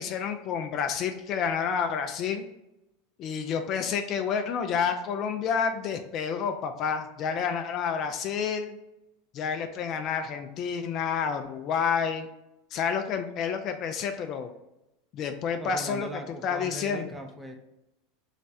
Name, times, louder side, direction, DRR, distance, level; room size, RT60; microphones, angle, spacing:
voice 1, 0.0-2.5 3.2-8.8 9.3-12.3 12.7-14.5 15.1-16.1 16.4-17.0, left 6 dB, 45° left, 6 dB, 0.3 m, -29 dB
voice 2, 15.6-17.6, right 1 dB, 5° right, 3 dB, 0.6 m, -39 dB
3.2 x 3.1 x 2.6 m, 0.92 s
hypercardioid pair, 90°, 0 cm